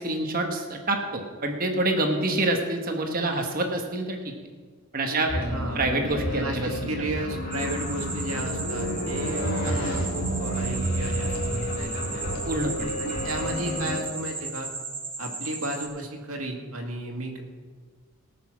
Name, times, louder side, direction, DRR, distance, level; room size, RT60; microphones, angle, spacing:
voice 1, 0.0-4.3 4.9-5.3 5.7-6.7 12.4-12.9, right 2 dB, 40° right, 3 dB, 1.2 m, -27 dB
voice 2, 5.1-5.9 6.3-12.3 13.0-14.7 15.2-17.4, right 1 dB, 70° right, 2 dB, 2.1 m, -34 dB
sound 1, 5.3-14.0, equal, 40° left, 2.4 m, -30 dB
sound 2, 7.5-15.9, right 4 dB, 10° right, 1.4 m, -36 dB
18.5 x 6.3 x 6.1 m, 1.5 s
head